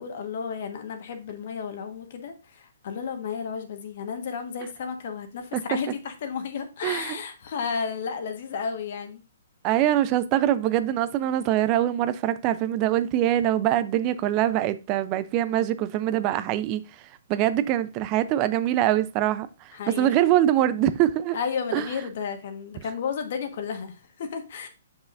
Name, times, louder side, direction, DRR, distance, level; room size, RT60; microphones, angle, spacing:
voice 1, 0.0-9.2 19.7-20.1 21.3-24.7, left 6 dB, 55° left, 1.3 m, -33 dB
voice 2, 6.8-7.2 9.6-16.8 17.3-19.5 19.9-21.4 21.7-21.8, right 12 dB, 30° right, 0.5 m, -23 dB
6.9 x 5.6 x 2.5 m
hypercardioid pair, 140°, 0 cm